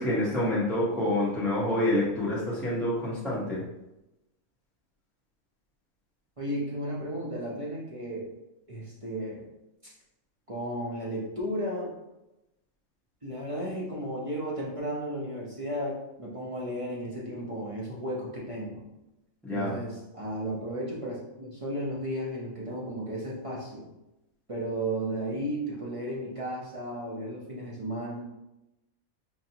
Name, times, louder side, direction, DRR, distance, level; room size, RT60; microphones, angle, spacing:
voice 1, 0.0-3.6 19.4-19.8, left 1 dB, ahead, -8 dB, 0.7 m, -27 dB
voice 2, 6.4-8.3 8.7-9.5 9.8-9.9 10.5-12.0 13.2-18.9 19.5-23.9 24.5-28.2, right 1 dB, 35° right, -6 dB, 0.5 m, -34 dB
4.7 x 2.6 x 2.8 m, 0.93 s
omnidirectional pair, 1.5 m